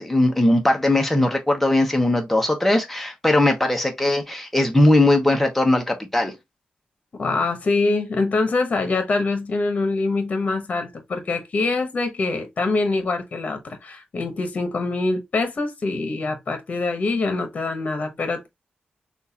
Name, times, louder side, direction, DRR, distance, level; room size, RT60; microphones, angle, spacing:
voice 1, 0.0-6.3, left 1 dB, 5° left, 0.9 m, -19 dB
voice 2, 7.2-18.5, left 3 dB, 50° left, 1.1 m, -24 dB
6.2 x 2.5 x 2.8 m
wide cardioid pair, 165°, 3 cm